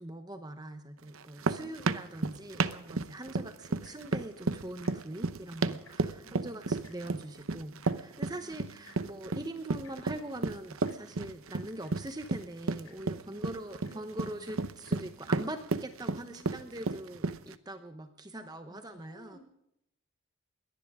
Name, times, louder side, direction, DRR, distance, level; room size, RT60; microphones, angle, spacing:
voice 1, 0.0-19.4, right 1 dB, 20° right, 7 dB, 0.9 m, -42 dB
sound 1, 1.1-17.6, right 3 dB, 70° right, 0.9 m, -33 dB
Tick-tock, 3.7-4.1 4.8-5.0 5.3-5.4 5.7-6.2 6.8-7.0 7.8-8.0 8.8-9.0 9.8-9.9 10.8-11.0 11.5-11.6 11.8-12.1 12.8-13.0 13.8-14.0 14.7-14.9 15.7-15.8, left 6 dB, 80° left, 5.0 m, -58 dB
voice 2, 6.2-6.7 8.4-9.2 13.3-14.0 14.3-14.8 16.2-16.8 18.3-19.4, equal, 40° left, 2 dB, 6.6 m, -57 dB
22.0 x 18.0 x 3.7 m, 0.76 s
head